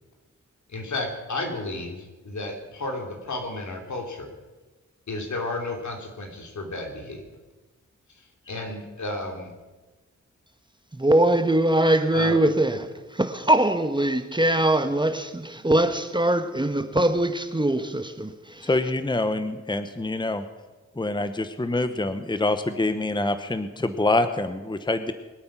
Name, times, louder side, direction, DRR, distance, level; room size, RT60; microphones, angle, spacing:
voice 1, 0.7-4.3 5.1-7.2 8.2-9.5 12.1-12.4, left 2 dB, 75° left, 2.9 m, -32 dB
voice 2, 10.9-18.7, right 1 dB, 15° right, 1.2 m, -22 dB
voice 3, 18.6-20.4 21.0-25.1, left 2 dB, 15° left, 1.0 m, -25 dB
23.0 x 8.6 x 6.1 m
cardioid pair, 60°, 29 cm